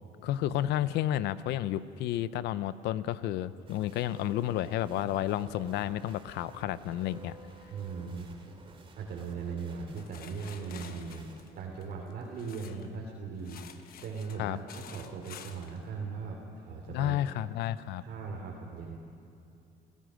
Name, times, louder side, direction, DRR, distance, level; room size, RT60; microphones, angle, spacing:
voice 1, 0.2-7.3 14.4-14.6 16.9-18.0, left 12 dB, 80° left, 15 dB, 0.7 m, -31 dB
sound 1, 3.7-11.4, right 3 dB, 30° right, 2.9 m, -53 dB
voice 2, 7.7-8.3 9.0-11.3 11.5-17.2 18.0-19.0, right 5 dB, 65° right, -2 dB, 3.2 m, -39 dB
sound 2, 9.9-12.9 13.4-15.8, left 8 dB, 60° left, 1.2 m, -50 dB
28.5 x 16.5 x 6.4 m, 2.6 s
cardioid pair, 110°, 17 cm